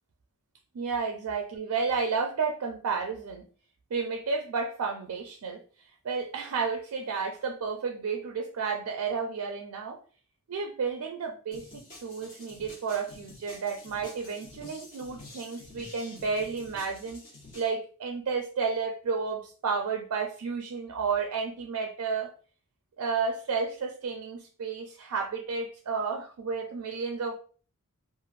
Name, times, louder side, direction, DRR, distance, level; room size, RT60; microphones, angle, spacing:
voice 1, 0.7-3.5 3.9-5.6 6.0-10.0 10.5-17.2 17.5-22.3 23.0-27.4, right 5 dB, 80° right, 3 dB, 0.4 m, -32 dB
sound 1, 11.5-17.7, left 2 dB, 40° left, 1.1 m, -49 dB
3.1 x 2.4 x 2.4 m, 0.41 s
head